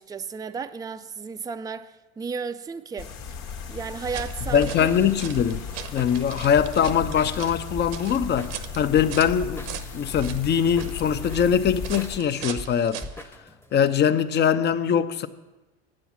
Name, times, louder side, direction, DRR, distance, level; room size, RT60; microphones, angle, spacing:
voice 1, 0.0-3.1 3.7-4.7, right 5 dB, 10° right, 0.4 m, -33 dB
sound 1, 3.0-12.2, left 6 dB, 70° left, 1.5 m, -37 dB
sound 2, 4.0-13.3, right 10 dB, 70° right, 0.9 m, -40 dB
sound 3, 4.2-13.7, equal, 5° left, 0.9 m, -39 dB
voice 2, 4.5-5.6 5.9-9.6 9.9-13.0 13.7-15.3, left 8 dB, 35° left, 0.7 m, -22 dB
9.1 x 7.7 x 7.2 m
hypercardioid pair, 85°, 32 cm